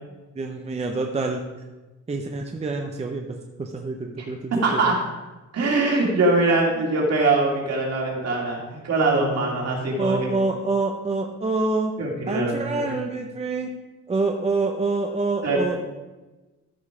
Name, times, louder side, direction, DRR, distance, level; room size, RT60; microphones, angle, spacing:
voice 1, 0.4-1.4 2.1-4.8 10.0-11.9 12.3-13.7 14.1-15.8, right 3 dB, 20° right, 3 dB, 0.6 m, -26 dB
voice 2, 4.5-4.9 5.5-10.3 12.0-12.9 15.4-15.6, right 2 dB, 55° right, -2 dB, 2.6 m, -22 dB
13.5 x 5.4 x 4.9 m, 1.2 s
wide cardioid pair, 175°, 30 cm